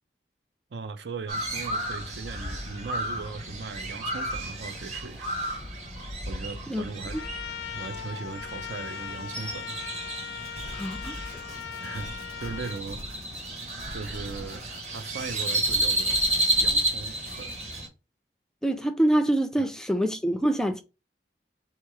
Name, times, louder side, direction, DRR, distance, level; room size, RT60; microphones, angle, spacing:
voice 1, 0.7-5.3 6.2-7.2 7.7-9.9 11.8-12.1 12.4-13.0 13.9-16.2 16.6-17.6 19.6-19.7, right 4 dB, 75° right, 0.5 m, -38 dB
Crow, 1.3-17.9, right 1 dB, 40° right, 1.1 m, -32 dB
Trumpet, 7.1-12.8, left 8 dB, 75° left, 0.4 m, -39 dB
sound 1, 10.4-17.8, equal, 60° right, 1.1 m, -45 dB
voice 2, 10.7-11.4 18.6-20.8, right 1 dB, 5° left, 0.3 m, -25 dB
3.6 x 2.9 x 4.7 m
head